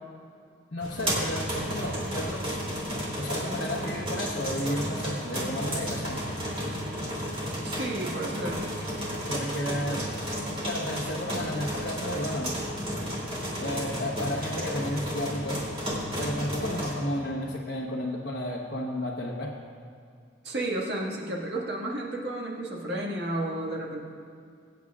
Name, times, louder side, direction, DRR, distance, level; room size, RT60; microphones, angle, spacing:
voice 1, 0.7-2.6 3.2-6.2 9.3-10.1 10.6-12.5 13.6-15.6 16.2-19.5, left 1 dB, 65° left, -4 dB, 1.1 m, -32 dB
sound 1, 0.8-16.9, equal, 30° right, 2.8 m, -32 dB
voice 2, 7.6-8.6 9.2-9.3 20.4-24.0, right 1 dB, 60° right, -2 dB, 1.9 m, -32 dB
23.5 x 9.2 x 2.4 m, 2.3 s
head